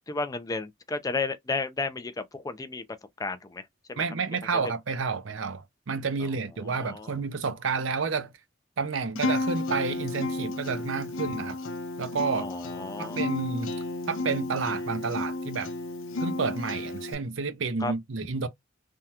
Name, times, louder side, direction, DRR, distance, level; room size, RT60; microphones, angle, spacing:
voice 1, 0.1-2.8 3.2-3.6 3.9-4.0 4.5-4.7 6.6-7.1 12.4-13.2 17.8-17.9, left 3 dB, 20° left, 0.4 m, -33 dB
voice 2, 4.0-8.3 8.8-11.6 12.0-12.5 13.0-13.7 14.1-15.7 16.2-18.5, right 4 dB, 70° right, 0.6 m, -30 dB
Acoustic guitar, 9.2-17.1, left 2 dB, 75° left, 0.6 m, -32 dB
3.5 x 2.2 x 2.8 m
head